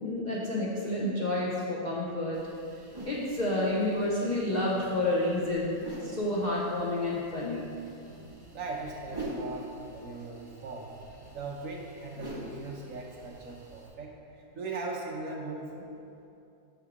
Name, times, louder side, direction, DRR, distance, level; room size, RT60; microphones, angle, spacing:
voice 1, 0.0-2.4 3.1-7.6, left 1 dB, 60° left, -6 dB, 0.4 m, -29 dB
sound 1, 2.3-13.9, right 1 dB, 25° right, 0.6 m, -45 dB
voice 2, 8.5-11.0 11.3-15.9, right 3 dB, 65° right, -1 dB, 1.0 m, -39 dB
6.7 x 3.6 x 4.8 m, 2.7 s
omnidirectional pair, 1.8 m